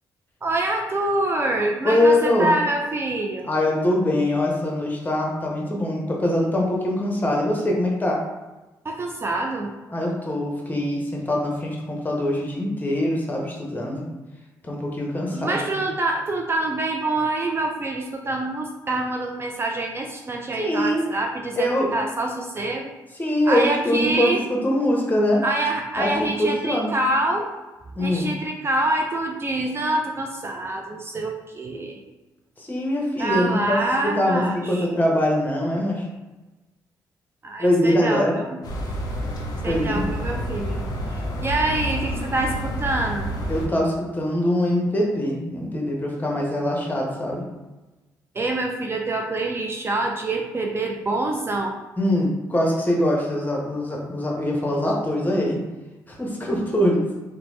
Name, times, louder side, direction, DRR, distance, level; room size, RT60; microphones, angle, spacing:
voice 1, 0.4-3.5 8.8-9.7 15.3-22.9 23.5-24.4 25.4-27.5 28.0-32.0 33.2-34.9 37.4-38.4 39.6-40.8 41.4-43.3 48.4-51.7, right 2 dB, 30° right, 2 dB, 0.3 m, -26 dB
voice 2, 1.8-2.5 3.4-8.2 9.9-14.0 14.7-15.8 20.6-21.1 21.6-21.9 23.1-25.4 26.0-26.9 27.9-28.3 32.6-36.1 37.6-38.4 39.7-40.0 43.5-47.4 52.0-55.6 56.1-57.0, left 1 dB, 20° left, -1 dB, 0.8 m, -23 dB
sound 1, 38.6-43.7, equal, 55° left, 0.6 m, -29 dB
2.9 x 2.1 x 3.0 m, 1.1 s
supercardioid pair, 60°, 8 cm